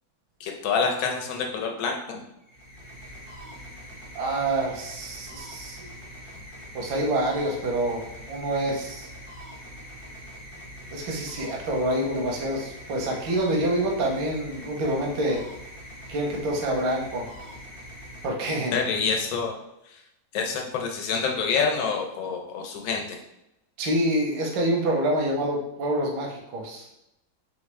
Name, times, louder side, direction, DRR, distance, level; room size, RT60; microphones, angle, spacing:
voice 1, 0.4-2.2 18.7-19.5 19.9-20.0 20.3-23.2, left 5 dB, 85° left, 2 dB, 1.5 m, -27 dB
sound 1, 2.4-18.9, equal, 40° left, 0.4 m, -43 dB
voice 2, 4.1-5.9 6.7-8.0 8.3-9.1 10.9-15.4 16.1-17.2 18.2-18.7 23.8-26.9, right 1 dB, 85° right, 0 dB, 1.5 m, -27 dB
4.0 x 3.5 x 3.2 m, 0.87 s
omnidirectional pair, 2.1 m